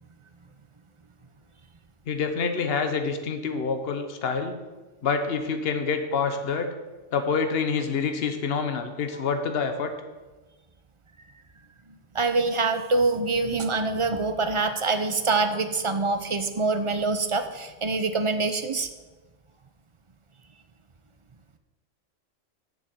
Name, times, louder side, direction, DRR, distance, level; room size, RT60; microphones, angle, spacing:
voice 1, 2.1-4.6 5.0-6.7 7.1-9.9, left 5 dB, 55° left, 7 dB, 1.1 m, -27 dB
voice 2, 12.1-18.9, right 3 dB, 35° right, 8 dB, 0.6 m, -25 dB
7.2 x 6.6 x 7.9 m, 1.2 s
omnidirectional pair, 1.3 m